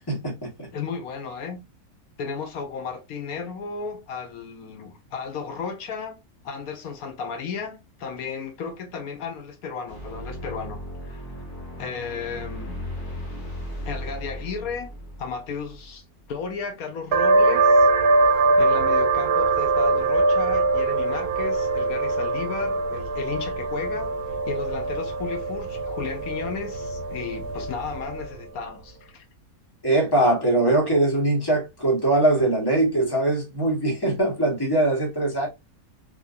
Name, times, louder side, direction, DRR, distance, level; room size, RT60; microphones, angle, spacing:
voice 1, 0.1-0.7 29.8-35.5, right 2 dB, 15° left, 1.5 m, -22 dB
voice 2, 0.7-1.6 2.2-6.2 6.4-11.3 11.8-12.8 13.8-14.9 15.2-17.9 18.6-24.1 24.5-29.2, left 5 dB, 80° left, 1.2 m, -34 dB
sound 1, 9.9-16.5, equal, 35° left, 1.3 m, -36 dB
sound 2, 17.1-28.4, right 3 dB, 75° right, 1.2 m, -22 dB
3.7 x 2.9 x 2.5 m
omnidirectional pair, 1.5 m